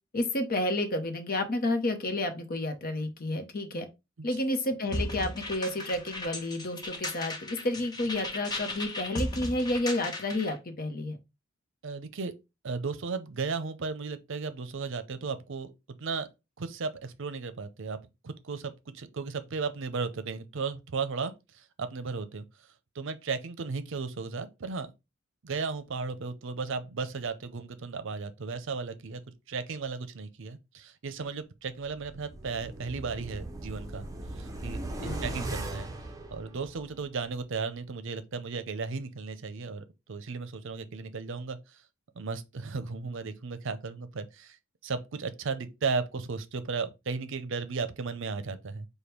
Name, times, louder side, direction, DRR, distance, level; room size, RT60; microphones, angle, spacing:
voice 1, 0.1-3.9 4.2-11.2 35.0-35.5, left 1 dB, 45° left, 0.9 m, -30 dB
sound 1, 4.9-10.5, left 1 dB, 20° left, 1.1 m, -36 dB
voice 2, 11.8-12.3 12.6-15.7 16.0-16.3 16.6-18.0 18.2-22.4 22.9-24.9 25.4-29.2 29.5-34.1 34.4-35.9 36.3-41.8 42.1-44.6 44.8-48.9, right 4 dB, 65° right, 0.6 m, -35 dB
sound 2, 31.9-37.0 37.4-37.5, right 2 dB, 15° right, 0.7 m, -39 dB
5.1 x 2.2 x 4.4 m
head